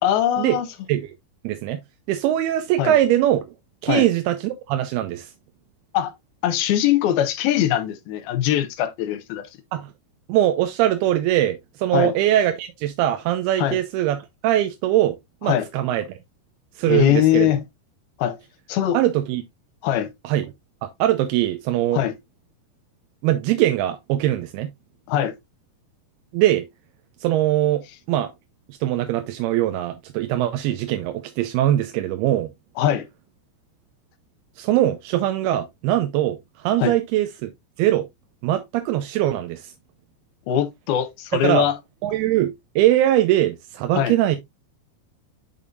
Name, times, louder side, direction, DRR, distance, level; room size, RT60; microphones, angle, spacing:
voice 1, 0.0-0.7 2.8-3.0 3.9-4.1 5.9-6.1 6.4-9.5 11.9-12.1 13.6-13.8 15.5-15.7 16.9-17.6 18.2-18.4 18.7-19.0 19.8-20.1 21.9-22.1 25.1-25.4 32.8-33.1 36.8-36.9 40.5-41.8 43.9-44.1, left 11 dB, 80° left, 2.5 m, -21 dB
voice 2, 1.4-1.8 2.1-3.4 3.8-5.3 9.7-9.9 10.3-14.2 14.4-15.2 15.4-16.2 16.8-17.5 18.9-19.4 20.2-20.5 20.8-22.0 23.2-24.7 26.3-26.7 27.2-27.8 28.1-28.3 28.7-32.5 34.6-37.5 37.8-38.1 38.4-39.7 41.3-41.7 42.0-44.4, right 13 dB, 85° right, 2.5 m, -21 dB
8.3 x 5.4 x 2.5 m
omnidirectional pair, 4.7 m